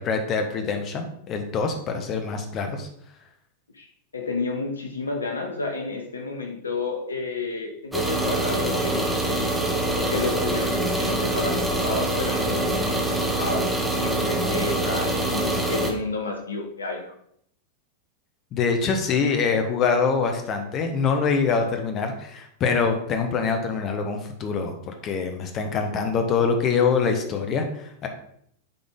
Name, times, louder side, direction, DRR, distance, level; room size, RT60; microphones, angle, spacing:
voice 1, 0.0-2.9 18.5-28.1, left 5 dB, 30° left, 5 dB, 1.2 m, -24 dB
voice 2, 4.1-9.1 9.9-13.7 13.9-17.1, left 3 dB, 75° left, 4 dB, 0.8 m, -31 dB
sound 1, 7.9-15.9, right 1 dB, ahead, 1.5 m, -24 dB
10.5 x 3.9 x 3.8 m, 0.68 s
figure-of-eight pair, 90°, 0 cm